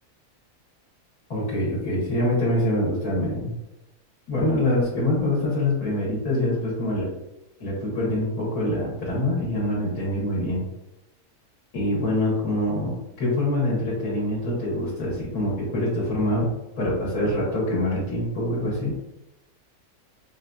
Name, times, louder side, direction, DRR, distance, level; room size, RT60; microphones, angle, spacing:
voice 1, 1.3-3.5 4.3-7.1 7.6-10.6 11.7-16.5 16.8-19.0, left 1 dB, 90° left, -6 dB, 1.7 m, -25 dB
5.3 x 2.6 x 2.3 m, 0.91 s
omnidirectional pair, 1.5 m